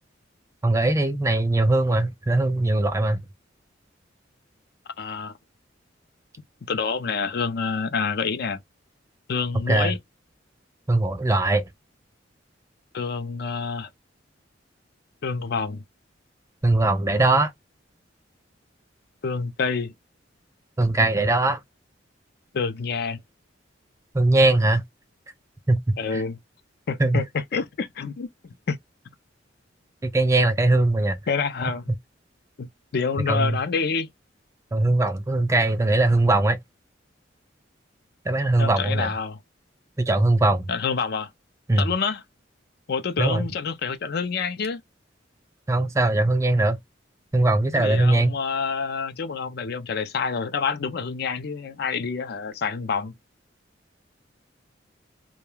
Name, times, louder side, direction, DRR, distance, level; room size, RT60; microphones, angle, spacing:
voice 1, 0.6-3.2 9.7-9.9 10.9-11.7 16.6-17.5 20.8-21.6 24.1-24.8 25.7-26.2 27.0-27.2 30.0-31.2 33.3-33.6 34.7-36.6 38.3-39.1 40.0-40.6 41.7-41.9 43.2-43.5 45.7-46.8 47.3-48.3, right 2 dB, 15° right, 0.3 m, -20 dB
voice 2, 5.0-5.3 6.7-8.6 9.3-10.0 12.9-13.9 15.2-15.8 19.2-19.9 22.5-23.2 26.0-26.4 26.9-28.8 31.3-31.8 32.6-34.1 38.6-39.4 40.7-41.3 41.8-42.2 42.9-44.8 47.7-53.1, left 5 dB, 55° left, 0.5 m, -27 dB
2.3 x 2.2 x 3.1 m
head